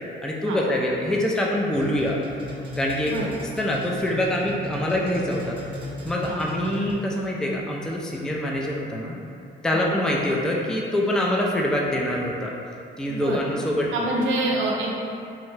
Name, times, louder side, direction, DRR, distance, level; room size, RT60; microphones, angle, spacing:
voice 1, 0.2-2.2 2.8-3.1 3.6-5.6 6.0-9.2 9.6-12.5 13.0-14.1, left 1 dB, 5° left, -2 dB, 0.3 m, -25 dB
sound 1, 1.7-7.2, left 1 dB, 25° right, 0.8 m, -36 dB
voice 2, 13.1-13.4 13.9-14.9, right 2 dB, 75° right, -2 dB, 0.5 m, -26 dB
3.6 x 2.1 x 3.1 m, 2.6 s
cardioid pair, 90°, 20 cm